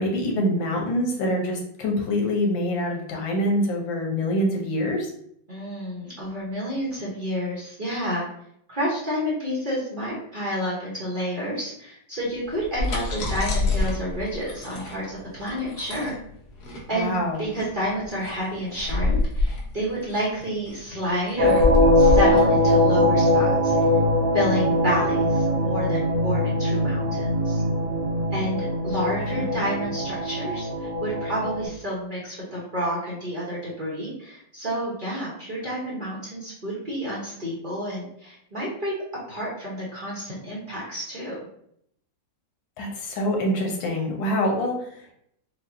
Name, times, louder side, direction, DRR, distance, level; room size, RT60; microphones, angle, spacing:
voice 1, 0.0-5.1 16.9-17.4 29.2-29.6 42.8-45.1, equal, 90° left, 1 dB, 1.6 m, -25 dB
voice 2, 5.5-8.3 8.7-16.1 16.9-17.1 17.4-21.6 21.9-23.8 24.3-27.6 28.3-38.9 39.3-41.4, equal, 35° right, -6 dB, 0.9 m, -29 dB
sound 1, 12.5-23.9, left 2 dB, 65° left, 1.4 m, -27 dB
sound 2, 21.4-31.6, left 1 dB, 70° right, 1.4 m, -21 dB
5.2 x 2.4 x 2.6 m, 0.70 s
omnidirectional pair, 2.0 m